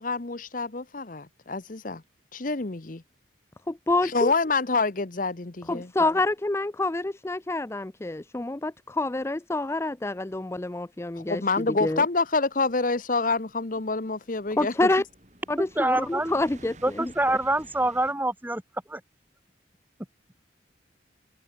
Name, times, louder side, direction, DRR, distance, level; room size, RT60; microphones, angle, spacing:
voice 1, 0.0-2.0 2.3-3.0 4.1-5.9 11.3-14.7, left 3 dB, 45° left, 1.0 m, -27 dB
voice 2, 3.7-4.3 5.7-12.1 14.6-15.0 15.5-17.1, left 2 dB, 15° left, 0.4 m, -27 dB
sound 1, 11.1-18.1, right 2 dB, 35° right, 7.0 m, -53 dB
voice 3, 15.6-16.3 16.8-18.6 18.9-19.0, right 1 dB, 10° right, 2.2 m, -26 dB
head